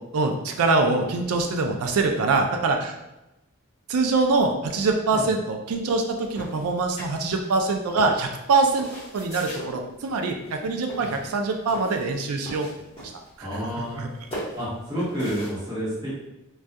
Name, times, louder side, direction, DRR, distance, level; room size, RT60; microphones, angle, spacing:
voice 1, 0.1-3.0 3.9-6.0 6.3-8.9 9.1-12.7 13.4-13.5 13.9-14.1, right 3 dB, 85° right, 4 dB, 0.4 m, -24 dB
sound 1, 6.3-7.5 8.0-9.7 10.4-10.6 10.9-12.1 12.4-13.3 13.6-15.5, equal, 25° left, 1.0 m, -37 dB
voice 2, 13.4-14.0 14.5-16.1, equal, 20° right, -10 dB, 0.9 m, -30 dB
2.3 x 2.2 x 2.6 m, 0.97 s
head